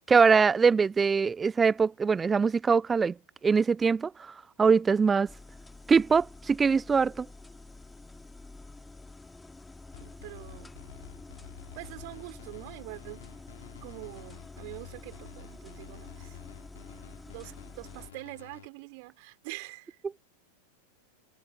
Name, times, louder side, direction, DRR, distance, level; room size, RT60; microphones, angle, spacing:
voice 1, 0.0-3.1 3.4-5.3 5.9-7.3, right 5 dB, 15° right, 0.5 m, -23 dB
sound 1, 5.3-18.1, left 2 dB, 10° left, 3.5 m, -48 dB
sound 2, 9.9-18.7, left 11 dB, 60° left, 4.4 m, -51 dB
voice 2, 10.0-10.7 11.7-13.2 13.8-16.4 17.3-20.0, right 30 dB, 45° right, 4.9 m, -44 dB
figure-of-eight pair, 90°, 0 cm